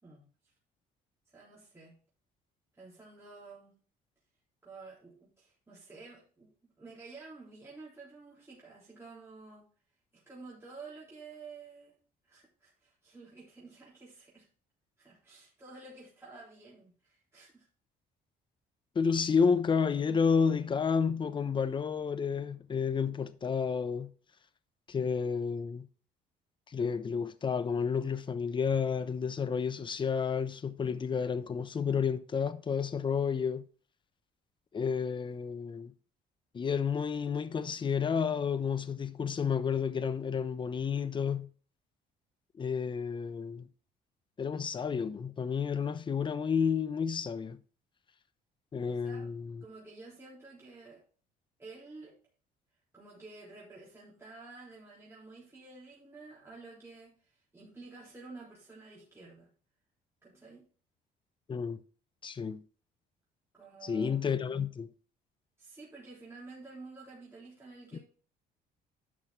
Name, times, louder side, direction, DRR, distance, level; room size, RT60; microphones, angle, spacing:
voice 1, 1.3-1.9 2.7-3.7 4.6-9.7 10.1-12.0 12.2-14.5 15.0-17.7 48.8-49.3 49.6-51.0 51.6-52.2 52.9-59.5 60.2-60.6 63.5-64.7 65.6-68.0, right 3 dB, 15° right, 3.7 m, -51 dB
voice 2, 18.9-24.1 24.9-25.9 26.7-33.6 34.7-35.9 36.5-41.5 42.6-43.7 44.4-47.6 48.7-49.6 61.5-61.8 62.2-62.6 63.8-64.9 67.9-68.0, left 6 dB, 30° left, 0.8 m, -31 dB
11.0 x 6.1 x 3.8 m
cardioid pair, 110°, 17 cm